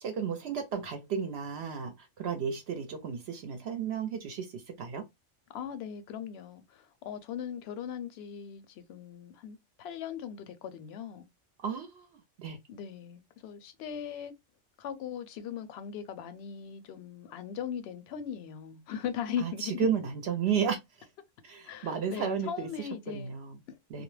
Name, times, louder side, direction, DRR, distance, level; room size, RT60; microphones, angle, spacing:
voice 1, 0.0-5.0 11.6-12.1 12.4-12.6 19.4-21.1 21.4-23.6 23.9-24.0, right 7 dB, 65° right, 0.7 m, -33 dB
voice 2, 5.5-11.3 12.7-14.3 14.8-19.9 21.6-23.3 23.7-24.0, left 8 dB, 65° left, 0.7 m, -39 dB
2.3 x 2.1 x 3.1 m
omnidirectional pair, 1.3 m